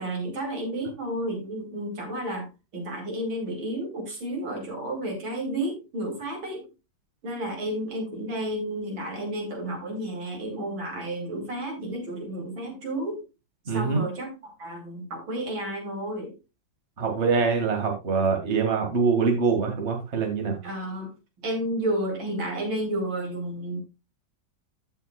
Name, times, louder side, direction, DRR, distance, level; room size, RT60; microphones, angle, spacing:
voice 1, 0.0-6.7 7.2-13.2 13.7-16.4 20.6-21.1 21.4-23.8, right 1 dB, 85° right, 3 dB, 3.5 m, -31 dB
voice 2, 13.7-14.0 17.0-20.6, right 5 dB, 35° right, 3 dB, 2.1 m, -24 dB
15.0 x 5.7 x 2.2 m, 0.26 s
omnidirectional pair, 2.1 m